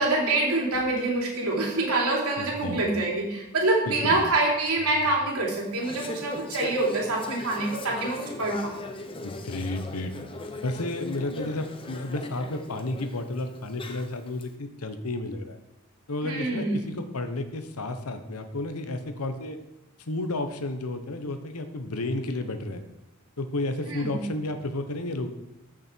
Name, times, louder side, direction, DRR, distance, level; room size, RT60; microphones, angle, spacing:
voice 1, 0.0-8.7 16.2-16.8 23.9-24.2, right 2 dB, 90° right, -2 dB, 3.2 m, -26 dB
voice 2, 2.4-2.8 3.9-4.2 9.2-10.1 10.6-15.6 16.1-19.6 20.1-22.8 23.4-25.3, left 2 dB, 85° left, 8 dB, 1.1 m, -32 dB
Conversation / Chatter, 5.5-14.4, left 2 dB, 25° left, 0.8 m, -39 dB
14.5 x 6.5 x 4.5 m, 0.95 s
head